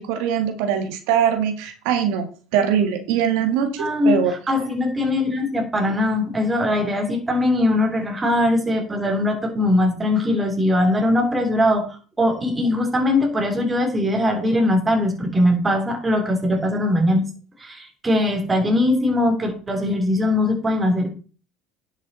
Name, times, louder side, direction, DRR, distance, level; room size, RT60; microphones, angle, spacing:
voice 1, 0.0-2.3 2.5-4.3, right 8 dB, 80° right, 6 dB, 1.8 m, -22 dB
voice 2, 3.7-17.2 17.6-21.1, left 1 dB, 15° right, 3 dB, 3.2 m, -21 dB
11.0 x 7.1 x 4.2 m, 0.38 s
supercardioid pair, 115°, 0 cm